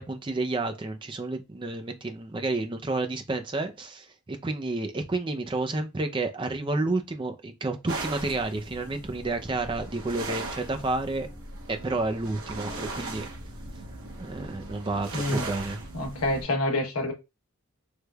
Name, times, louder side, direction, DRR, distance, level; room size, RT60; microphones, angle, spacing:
voice 1, 0.0-11.3 11.7-13.3 14.2-15.8, right 2 dB, 20° right, 0.4 m, -30 dB
sound 1, 7.9-16.4, right 2 dB, 75° right, 1.1 m, -38 dB
voice 2, 15.1-15.4 15.9-17.1, left 1 dB, 90° left, 1.0 m, -27 dB
3.3 x 3.1 x 2.3 m
head